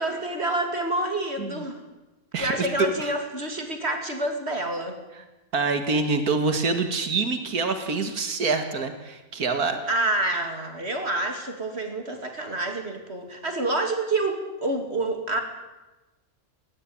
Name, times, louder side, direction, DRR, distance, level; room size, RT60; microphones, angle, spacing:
voice 1, 0.0-1.8 2.4-5.0 9.9-15.4, right 2 dB, 45° right, 5 dB, 2.9 m, -28 dB
voice 2, 2.3-3.1 5.1-5.2 5.5-9.8, right 4 dB, 90° right, 8 dB, 2.4 m, -26 dB
20.0 x 19.5 x 8.8 m, 1.1 s
omnidirectional pair, 1.5 m